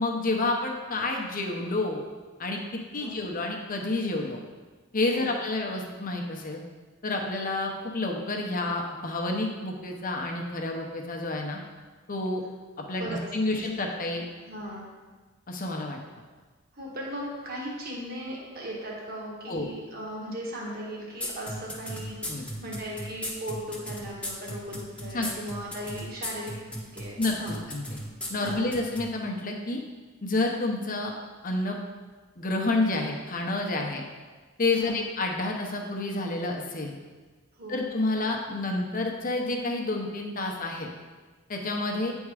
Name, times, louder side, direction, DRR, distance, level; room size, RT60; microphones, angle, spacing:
voice 1, 0.0-2.0 2.4-4.4 4.9-6.6 7.0-11.6 12.1-12.4 12.8-14.2 15.5-16.0 19.5-19.7 22.3-22.4 25.1-25.3 27.2-28.0 28.3-29.8 30.2-31.1 31.4-31.8 32.4-34.0 34.6-36.9 37.7-40.9 41.5-42.1, left 2 dB, 45° left, 1 dB, 0.9 m, -29 dB
voice 2, 13.0-13.6 14.5-14.9 16.7-27.6 28.4-28.8 34.7-35.0 37.6-37.8, equal, 50° right, -4 dB, 1.5 m, -38 dB
sound 1, 21.2-29.1, left 1 dB, 5° left, 1.0 m, -35 dB
8.5 x 3.6 x 4.9 m, 1.4 s
head